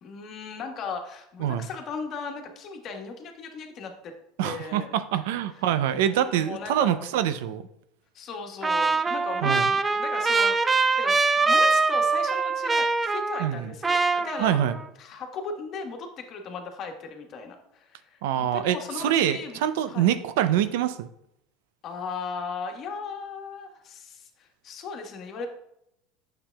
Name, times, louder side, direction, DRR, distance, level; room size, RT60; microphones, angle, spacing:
voice 1, 0.0-4.1 4.4-4.9 5.9-7.4 8.1-14.6 15.0-20.1 21.8-25.5, left 4 dB, 45° left, 3 dB, 1.3 m, -37 dB
voice 2, 4.4-7.6 9.4-9.7 13.4-13.7 14.4-14.8 18.2-18.8 19.0-21.1, right 10 dB, 80° right, 12 dB, 0.5 m, -25 dB
Trumpet, 8.6-13.6 13.8-14.8, right 3 dB, 15° right, 0.4 m, -23 dB
8.8 x 6.8 x 2.3 m, 0.78 s
supercardioid pair, 115°, 0 cm